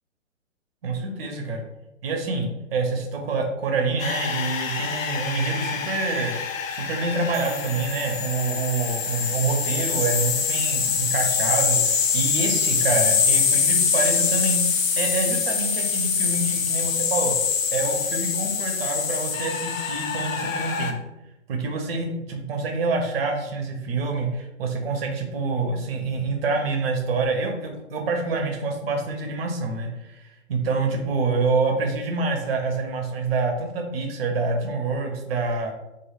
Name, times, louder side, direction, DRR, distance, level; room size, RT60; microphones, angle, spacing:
voice 1, 0.8-1.6 2.0-6.3 6.7-17.4 17.7-21.0 21.5-30.2 30.5-35.7, right 3 dB, 50° right, 2 dB, 0.7 m, -26 dB
sound 1, 4.0-20.9, left 6 dB, 85° left, 0.6 m, -24 dB
3.0 x 2.6 x 2.4 m, 0.96 s
figure-of-eight pair, 130°, 39 cm